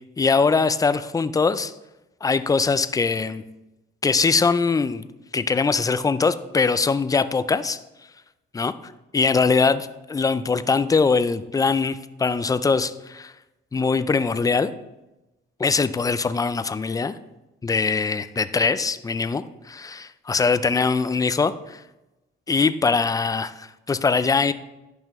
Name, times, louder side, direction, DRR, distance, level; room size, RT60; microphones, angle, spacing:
voice 1, 0.2-1.7 2.2-3.4 4.0-5.1 5.3-7.8 8.5-8.7 9.1-13.3 13.7-14.7 15.6-17.1 17.6-21.8 22.5-24.5, left 4 dB, 20° left, 13 dB, 0.4 m, -22 dB
11.0 x 5.5 x 3.1 m, 0.98 s
cardioid pair, 90°, 20 cm